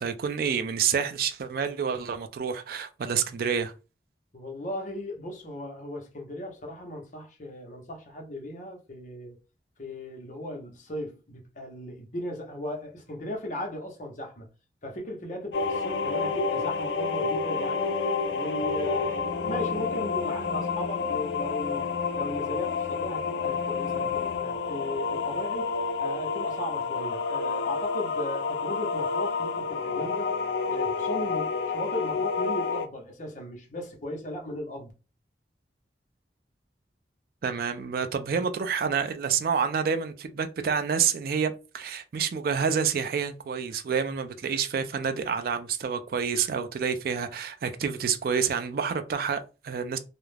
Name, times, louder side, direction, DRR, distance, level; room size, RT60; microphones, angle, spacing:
voice 1, 0.0-3.7 37.4-50.0, right 6 dB, 55° right, 0.3 m, -28 dB
voice 2, 4.3-9.4 9.8-14.5 14.8-17.9 18.3-21.9 22.1-25.7 26.0-30.3 30.7-34.9, left 1 dB, 45° left, 0.8 m, -37 dB
sound 1, 15.5-32.9, left 5 dB, 75° left, 0.4 m, -29 dB
2.3 x 2.0 x 3.2 m
head